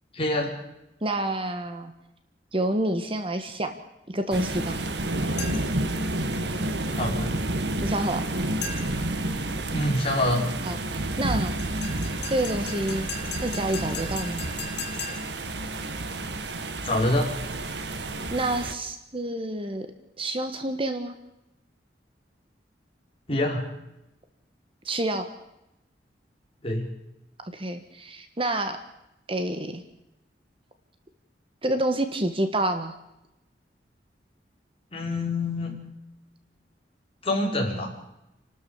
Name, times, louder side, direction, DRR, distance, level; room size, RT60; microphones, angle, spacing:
voice 1, 0.1-0.5 6.9-7.3 9.7-10.5 16.8-17.4 23.3-23.7 26.6-26.9 34.9-35.8 37.2-37.9, left 1 dB, 35° left, -1 dB, 4.9 m, -26 dB
voice 2, 1.0-1.9 2.5-3.7 4.1-4.9 7.8-8.2 10.6-11.6 12.3-13.1 13.4-14.4 18.3-19.9 20.2-21.2 24.8-25.3 27.5-28.8 29.3-29.8 31.6-32.9, right 1 dB, 30° right, 8 dB, 1.5 m, -28 dB
sound 1, 4.3-18.7, right 1 dB, 70° right, 1.5 m, -30 dB
sound 2, 5.4-5.8 8.6-9.1 11.6-15.4, left 5 dB, 75° left, 4.8 m, -38 dB
30.0 x 13.0 x 7.1 m, 0.89 s
head